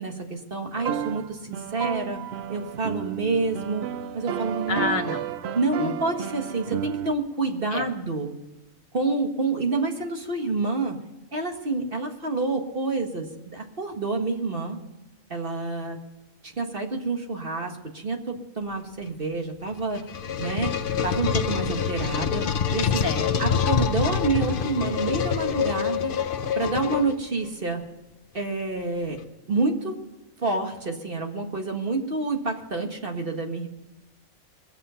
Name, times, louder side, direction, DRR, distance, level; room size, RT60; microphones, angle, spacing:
voice 1, 0.0-2.2 2.5-3.9 4.1-4.9 5.5-8.4 8.9-11.0 11.3-14.8 15.3-16.0 16.4-20.1 20.4-20.7 21.0-22.4 22.7-23.1 23.4-26.1 26.5-27.8 28.3-29.2 29.5-30.0 30.4-33.7, right 3 dB, 40° right, 3 dB, 1.8 m, -28 dB
sound 1, 0.8-7.1, right 10 dB, 60° right, 0.8 m, -32 dB
voice 2, 4.7-5.2 5.8-5.9 7.7-7.9 23.0-23.6, left 4 dB, 75° left, 5 dB, 1.6 m, -28 dB
sound 2, 19.7-27.5, left 7 dB, 50° left, 0.8 m, -26 dB
22.0 x 7.7 x 5.6 m, 1.0 s
omnidirectional pair, 1.4 m